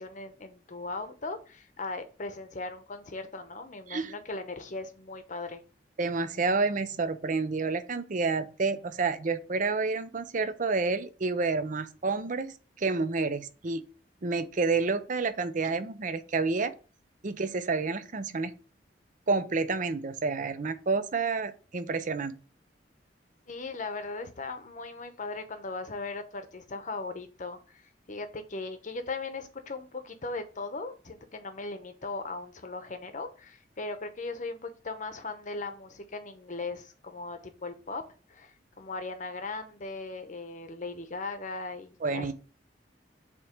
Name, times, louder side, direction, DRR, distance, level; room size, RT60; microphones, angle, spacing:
voice 1, 0.0-5.6 23.5-38.0 38.3-42.3, left 3 dB, 45° left, 0.8 m, -38 dB
voice 2, 6.0-13.8 14.2-16.7 17.2-18.5 19.3-22.3 42.0-42.3, right 4 dB, 45° right, 0.6 m, -29 dB
7.4 x 3.0 x 5.0 m
head